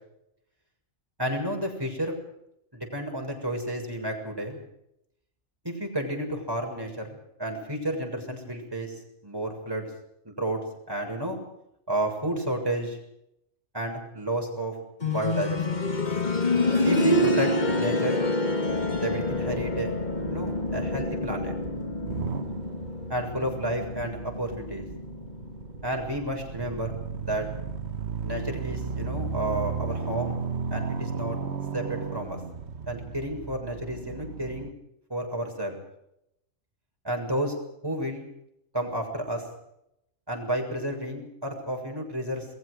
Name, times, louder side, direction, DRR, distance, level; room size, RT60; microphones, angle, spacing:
voice 1, 1.2-2.2 2.7-4.6 5.6-9.9 10.2-10.6 10.9-11.4 11.9-13.0 13.7-14.8 15.0-15.9 16.8-18.2 18.9-19.9 20.3-21.6 23.1-24.9 25.8-27.5 28.2-30.4 30.7-31.4 31.7-32.4 32.9-34.7 35.1-35.8 37.0-37.6 37.8-38.3 38.7-39.4 40.3-42.5, right 1 dB, 20° right, 2 dB, 7.0 m, -31 dB
sound 1, 15.0-25.8 26.1-26.2 27.1-27.2, left 2 dB, 35° left, 2.0 m, -27 dB
sound 2, 18.7-34.7, right 5 dB, 60° right, 1.7 m, -35 dB
28.5 x 22.5 x 5.0 m, 0.80 s
omnidirectional pair, 1.3 m